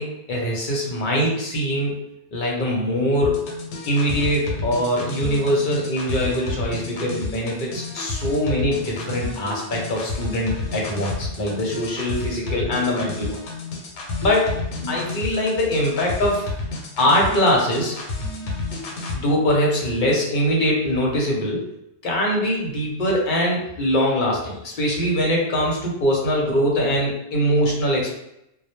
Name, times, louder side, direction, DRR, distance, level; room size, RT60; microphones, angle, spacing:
voice 1, 0.0-2.0 2.3-3.4 3.9-13.4 14.2-14.6 14.8-16.5 17.0-18.2 19.1-21.6 22.0-28.1, equal, 50° left, -2 dB, 0.7 m, -22 dB
sound 1, 3.2-19.2, left 3 dB, 85° left, 0.9 m, -31 dB
2.1 x 2.0 x 2.9 m, 0.81 s
omnidirectional pair, 1.2 m